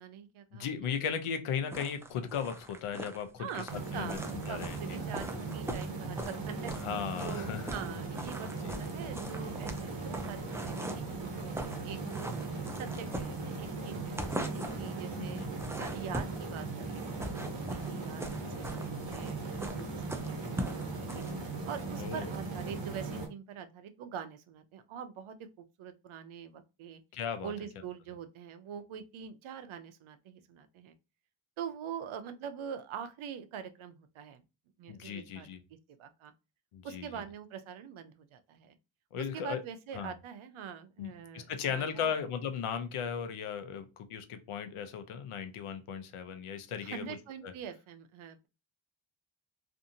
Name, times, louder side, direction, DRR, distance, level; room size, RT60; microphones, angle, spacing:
voice 1, 0.0-0.9 3.4-3.7 3.9-4.2 4.5-6.7 7.2-12.3 12.7-15.4 15.8-19.8 20.1-20.5 20.7-21.2 21.7-27.0 27.4-30.9 31.6-34.4 34.8-35.5 36.0-36.3 36.8-38.8 39.2-42.2 46.8-48.5, right 8 dB, 75° right, 0.6 m, -44 dB
voice 2, 0.5-4.2 4.5-4.8 6.8-7.7 8.6-8.8 15.2-15.5 22.0-22.3 27.1-27.5 34.9-35.6 36.7-37.2 39.1-39.6 39.9-40.1 41.0-47.0 47.4-47.5, left 7 dB, 85° left, 0.6 m, -36 dB
sound 1, 1.7-6.9 7.2-7.9 8.2-11.1 11.4-11.8 12.1-13.7 14.1-14.9 15.3-16.5 16.9-21.3, right 1 dB, 5° right, 0.3 m, -40 dB
sound 2, 3.7-23.3, right 3 dB, 55° right, 1.1 m, -38 dB
2.5 x 2.5 x 2.6 m
cardioid pair, 85°, 49 cm